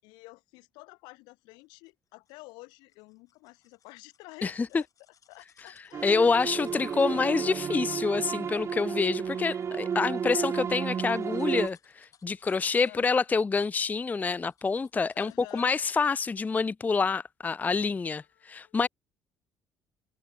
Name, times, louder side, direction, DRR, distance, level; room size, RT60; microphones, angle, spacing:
voice 1, 0.0-4.9 5.3-7.0 12.8-13.1 15.1-15.8 18.1-18.8, left 25 dB, 80° left, 6.1 m, -50 dB
sound 1, 1.5-16.7 17.1-17.2, left 8 dB, 50° left, 6.4 m, -66 dB
sound 2, 5.9-11.7, right 7 dB, 40° right, 0.5 m, -32 dB
voice 2, 6.0-18.9, left 4 dB, 20° left, 0.4 m, -27 dB
hypercardioid pair, 65°, 7 cm